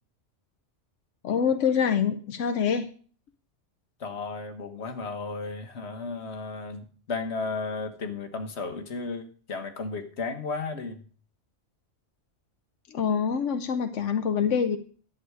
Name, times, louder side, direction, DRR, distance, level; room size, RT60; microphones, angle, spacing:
voice 1, 1.2-2.9 12.9-14.8, left 7 dB, 90° left, 8 dB, 1.2 m, -25 dB
voice 2, 4.0-11.1, left 4 dB, 65° left, 6 dB, 1.7 m, -34 dB
11.0 x 8.5 x 4.9 m, 0.41 s
omnidirectional pair, 1.2 m